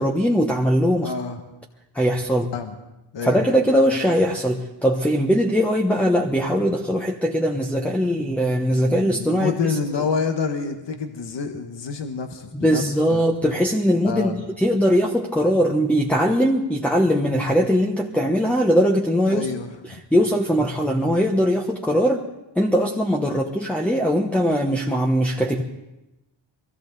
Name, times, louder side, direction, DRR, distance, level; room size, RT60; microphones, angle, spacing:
voice 1, 0.0-1.1 1.9-2.5 3.2-9.8 12.5-19.5 19.8-22.3 22.5-25.6, equal, 5° left, 2 dB, 1.1 m, -20 dB
voice 2, 1.0-1.4 2.5-2.7 3.1-3.4 8.7-12.8 13.1-13.2 14.0-14.4 19.3-19.7, left 5 dB, 60° left, 5 dB, 1.5 m, -28 dB
22.5 x 16.0 x 4.0 m, 0.96 s
cardioid pair, 95°, 48 cm